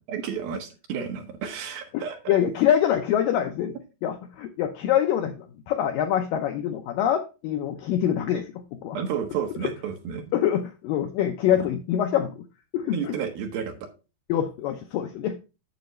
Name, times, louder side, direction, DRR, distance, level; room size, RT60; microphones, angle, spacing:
voice 1, 0.1-2.4 8.9-10.2 12.9-13.9, right 7 dB, 65° right, 4 dB, 3.0 m, -31 dB
voice 2, 1.9-3.8 4.0-9.0 9.6-9.7 10.3-12.5 12.7-13.1 14.3-15.4, left 10 dB, 80° left, 5 dB, 2.0 m, -25 dB
9.4 x 7.5 x 3.1 m, 0.30 s
omnidirectional pair, 4.8 m